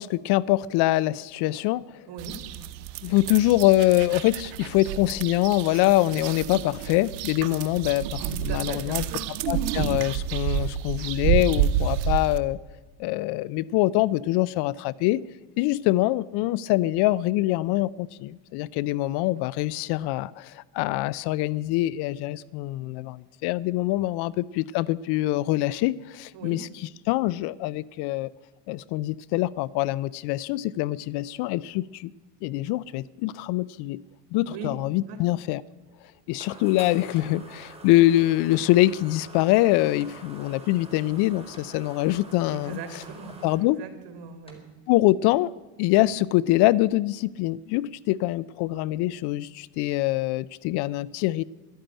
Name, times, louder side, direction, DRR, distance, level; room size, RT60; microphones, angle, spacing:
voice 1, 0.0-1.8 3.0-9.0 9.5-12.6 13.0-15.2 15.6-26.7 27.1-28.3 28.7-32.1 32.4-34.0 34.3-35.6 36.3-42.8 43.4-43.8 44.9-45.5 45.8-51.4, left 17 dB, 55° left, 21 dB, 0.5 m, -24 dB
sound 1, 2.2-12.4, right 10 dB, 75° right, 1.0 m, -29 dB
voice 2, 8.5-9.2 26.3-26.6 34.4-34.8 35.1-35.2 42.5-44.6, right 5 dB, 55° right, 8 dB, 2.4 m, -39 dB
sound 2, 35.6-43.6, right 2 dB, 10° right, 3.2 m, -46 dB
sound 3, 36.1-36.5 37.2-37.7 38.5-39.1 40.0-42.0 43.0-43.6 44.5-45.1 45.9-46.1, left 1 dB, 10° left, 2.8 m, -53 dB
11.5 x 9.0 x 8.9 m, 1.1 s
supercardioid pair, 90°, 49 cm